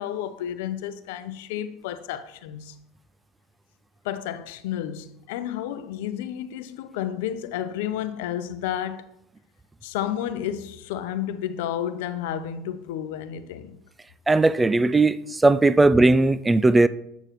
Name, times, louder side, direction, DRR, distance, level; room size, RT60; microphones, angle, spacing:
voice 1, 0.0-2.8 4.0-9.1 9.8-13.8, left 10 dB, 80° left, 0.6 m, -31 dB
voice 2, 14.3-16.9, right 2 dB, 15° right, 0.3 m, -18 dB
8.0 x 6.8 x 3.0 m
supercardioid pair, 110°, 0 cm